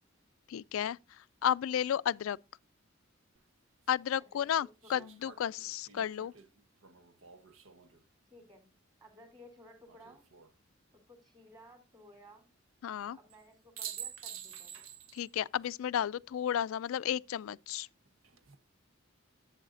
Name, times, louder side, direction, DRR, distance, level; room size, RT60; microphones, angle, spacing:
voice 1, 0.5-2.4 3.9-6.3 12.8-13.2 15.1-17.9, left 9 dB, 85° left, 0.3 m, -33 dB
sound 1, 3.3-3.4 4.8-8.0 9.9-10.5 13.3-13.4 13.8-15.3 15.6-15.7 18.0-18.5, right 9 dB, 85° right, 1.0 m, -48 dB
voice 2, 4.2-5.1 8.3-8.7 9.0-10.3 11.1-12.5 13.1-14.7, equal, 20° right, 3.2 m, -57 dB
11.5 x 7.8 x 2.5 m
head